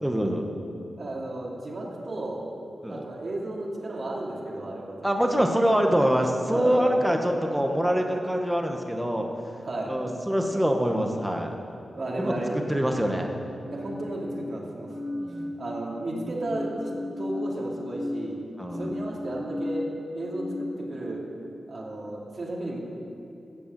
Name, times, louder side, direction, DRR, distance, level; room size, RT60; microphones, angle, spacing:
voice 1, 0.0-0.4 2.8-3.1 5.0-9.3 9.9-11.5 12.2-13.3 15.1-15.5 18.6-18.9, equal, 5° right, 3 dB, 1.5 m, -25 dB
voice 2, 1.0-2.5 2.9-5.0 5.3-5.4 6.5-7.0 9.6-10.0 11.9-12.6 13.7-14.9 15.6-16.9 17.2-18.4 18.7-19.9 20.1-21.2 21.7-22.8, right 2 dB, 55° right, -3 dB, 2.8 m, -33 dB
sound 1, 13.6-15.9 16.3-21.0, left 1 dB, 70° right, 2.0 m, -35 dB
15.5 x 7.0 x 7.7 m, 2.7 s
cardioid pair, 75°, 0 cm